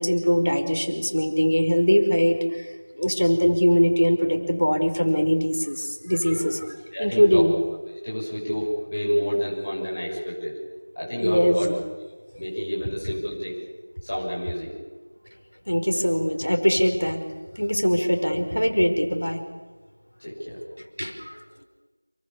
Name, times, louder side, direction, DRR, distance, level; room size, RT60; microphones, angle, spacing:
voice 1, 0.0-2.7 2.9-6.6 7.0-7.5 11.2-11.7 15.7-17.2 17.6-19.4 21.0-21.6, equal, 55° left, 5 dB, 5.3 m, -22 dB
voice 2, 6.9-7.4 8.0-10.5 10.9-11.7 12.4-13.5 14.0-14.8 20.2-20.6, equal, 20° left, -6 dB, 6.7 m, -29 dB
29.0 x 24.0 x 7.2 m, 1.3 s
figure-of-eight pair, 180°, 0 cm